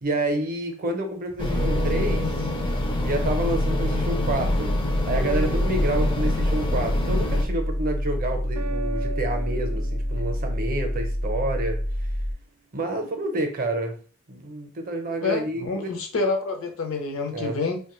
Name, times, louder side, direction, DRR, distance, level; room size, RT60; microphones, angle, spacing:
voice 1, 0.0-2.5 3.0-4.7 5.1-12.1 12.7-14.0 14.3-15.9 17.3-17.6, right 1 dB, 45° right, 5 dB, 0.6 m, -29 dB
sound 1, 1.4-7.5, left 1 dB, 25° left, 0.4 m, -25 dB
sound 2, 1.6-3.9 5.1-6.5 8.6-10.7, right 5 dB, 90° right, 0.3 m, -37 dB
sound 3, 4.3-12.3, equal, 85° left, 0.9 m, -28 dB
voice 2, 15.2-17.8, left 3 dB, 70° left, 5 dB, 0.6 m, -27 dB
3.0 x 2.2 x 3.0 m, 0.40 s
head